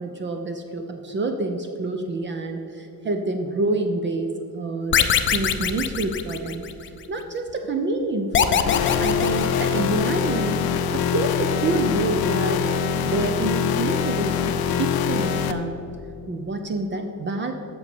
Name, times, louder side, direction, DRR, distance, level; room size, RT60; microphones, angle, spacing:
voice 1, 0.0-6.7 7.1-10.6 10.9-12.6 13.0-15.8 16.3-17.5, right 2 dB, 30° right, 5 dB, 0.6 m, -27 dB
sound 1, 4.9-6.9 8.3-10.1, left 8 dB, 35° left, 0.5 m, -22 dB
sound 2, 8.7-15.5, left 7 dB, 85° left, 0.7 m, -24 dB
7.8 x 6.7 x 6.9 m, 2.7 s
cardioid pair, 165°, 36 cm